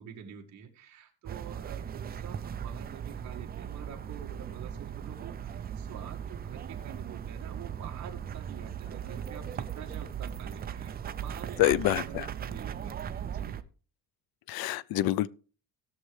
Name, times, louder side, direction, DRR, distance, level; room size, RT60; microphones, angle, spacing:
voice 1, 0.0-11.6 11.9-13.6, right 8 dB, 45° right, 2.2 m, -47 dB
sound 1, 1.3-13.6, right 8 dB, 25° right, 0.4 m, -38 dB
voice 2, 11.6-12.3 14.5-15.3, left 15 dB, 70° left, 0.6 m, -26 dB
19.0 x 6.6 x 3.2 m
cardioid pair, 160°, 38 cm